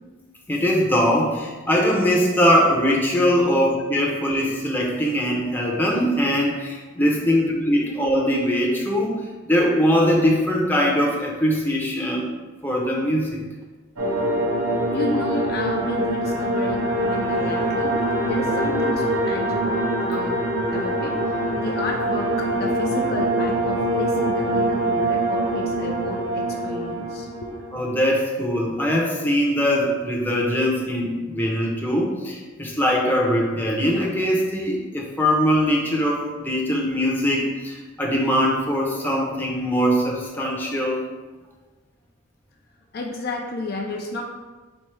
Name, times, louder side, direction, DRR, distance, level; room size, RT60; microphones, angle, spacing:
voice 1, 0.5-9.2 9.5-12.3 12.6-13.4 27.7-41.0, equal, 10° left, -3 dB, 0.7 m, -21 dB
sound 1, 14.0-28.0, right 1 dB, 85° right, 0.9 m, -24 dB
voice 2, 14.9-18.0 18.3-27.5 42.9-44.2, left 2 dB, 50° left, 1 dB, 0.4 m, -31 dB
4.3 x 2.7 x 4.5 m, 1.3 s
head